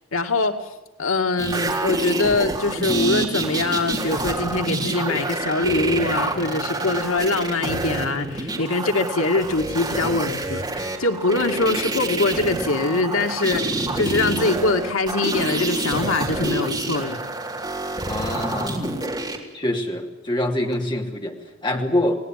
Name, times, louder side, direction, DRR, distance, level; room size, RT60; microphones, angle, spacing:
voice 1, 0.1-0.6 1.0-17.2 21.7-21.8, left 3 dB, 85° left, 5 dB, 2.3 m, -23 dB
sound 1, 1.4-19.4 20.7-20.8, right 2 dB, 20° right, 3.8 m, -27 dB
voice 2, 18.1-18.9 19.5-22.2, left 1 dB, 25° left, 2 dB, 3.0 m, -25 dB
29.5 x 19.0 x 7.6 m, 1.0 s
head